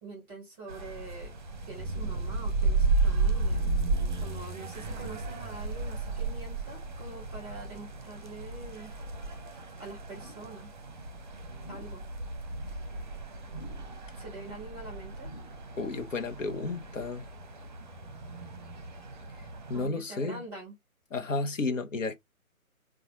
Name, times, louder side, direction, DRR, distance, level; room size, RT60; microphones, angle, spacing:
voice 1, 0.0-1.3 1.7-3.7 4.2-8.9 9.8-10.7 11.7-12.1 14.1-15.3 19.7-20.8, right 3 dB, 5° right, 1.0 m, -45 dB
sound 1, 0.7-19.9, right 3 dB, 35° right, 0.7 m, -33 dB
sound 2, 10.0-10.5 10.8-11.2 11.5-12.0 12.4-12.8 13.4-14.0 14.2-14.7 15.1-15.7 16.0-16.1, right 1 dB, 25° left, 0.8 m, -50 dB
voice 2, 15.8-17.3 19.7-20.4 21.1-22.2, left 3 dB, 60° left, 0.8 m, -32 dB
3.8 x 2.3 x 3.0 m
figure-of-eight pair, 145°, 43 cm